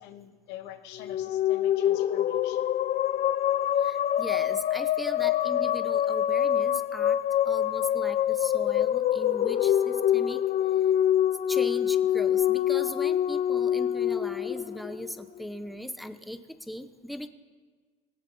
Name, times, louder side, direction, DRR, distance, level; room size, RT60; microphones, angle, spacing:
voice 1, 0.0-2.7, left 11 dB, 75° left, 9 dB, 1.2 m, -45 dB
sound 1, 1.0-15.4, left 11 dB, 45° left, 0.5 m, -25 dB
voice 2, 3.8-7.2 7.4-10.4 10.8-10.9 11.5-17.3, equal, ahead, 10 dB, 0.9 m, -39 dB
18.5 x 16.5 x 4.3 m, 1.5 s
supercardioid pair, 75°, 18 cm